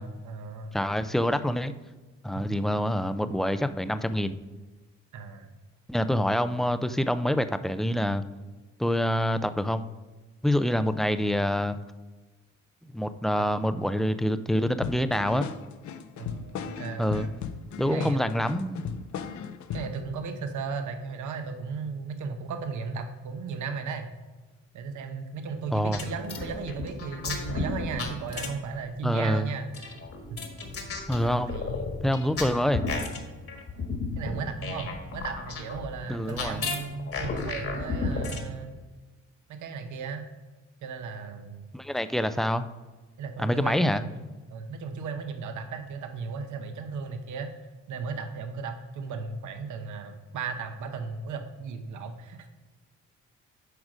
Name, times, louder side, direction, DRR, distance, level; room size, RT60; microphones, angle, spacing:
voice 1, 0.0-0.8 2.3-2.5 5.1-5.5 13.7-13.9 16.2-17.3 17.8-18.6 19.7-24.1 24.7-29.9 31.2-31.9 34.2-38.8 39.5-40.2 40.8-41.7 43.2-44.2 44.5-47.5 47.9-52.5, right 5 dB, 75° right, 7 dB, 1.0 m, -36 dB
voice 2, 0.7-1.7 2.2-4.3 5.9-8.2 8.8-9.8 10.4-11.8 12.9-15.5 17.0-17.3 17.8-18.8 25.7-26.0 29.0-29.5 31.1-31.6 32.0-32.8 36.1-36.6 41.7-42.7 43.4-44.0, equal, ahead, 11 dB, 0.4 m, -26 dB
sound 1, 14.8-20.0, left 7 dB, 70° left, 0.6 m, -37 dB
sound 2, 25.9-28.8 29.7-38.5, left 3 dB, 45° left, 1.6 m, -33 dB
8.2 x 4.8 x 5.0 m, 1.3 s
cardioid pair, 90°, 30 cm